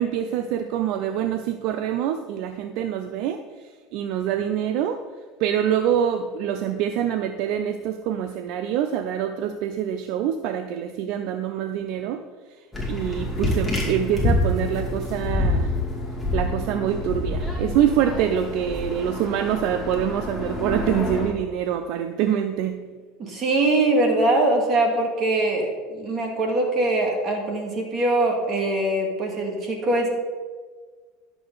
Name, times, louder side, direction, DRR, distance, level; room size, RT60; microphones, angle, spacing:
voice 1, 0.0-5.0 5.4-12.2 12.9-15.7 16.3-22.9, right 9 dB, 65° right, 8 dB, 0.5 m, -25 dB
sound 1, 12.7-21.3, left 1 dB, 5° left, 2.8 m, -27 dB
voice 2, 23.2-30.1, right 2 dB, 40° right, 1 dB, 2.3 m, -22 dB
11.0 x 7.0 x 4.0 m, 1.5 s
supercardioid pair, 110°, 0 cm